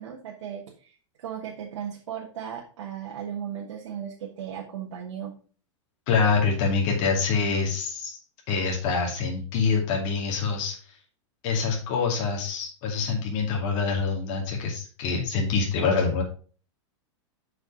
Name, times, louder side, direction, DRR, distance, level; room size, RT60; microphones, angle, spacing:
voice 1, 0.0-5.4, right 9 dB, 80° right, 0 dB, 1.3 m, -36 dB
voice 2, 6.1-8.2 8.5-10.7 11.4-16.2, left 5 dB, 50° left, -1 dB, 2.4 m, -25 dB
6.4 x 5.1 x 4.8 m, 0.40 s
hypercardioid pair, 120°, 16 cm